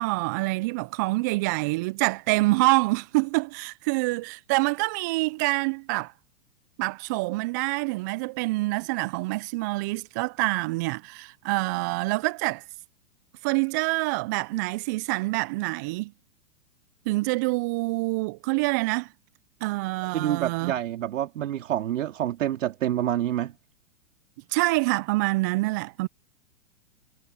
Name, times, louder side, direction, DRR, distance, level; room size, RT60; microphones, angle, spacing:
voice 1, 0.0-6.1 6.8-12.6 13.4-16.1 17.1-19.1 19.6-20.7 24.5-26.1, right 24 dB, 15° right, 0.3 m, -26 dB
voice 2, 20.1-23.5, right 12 dB, 65° right, 2.5 m, -27 dB
figure-of-eight pair, 110°, 42 cm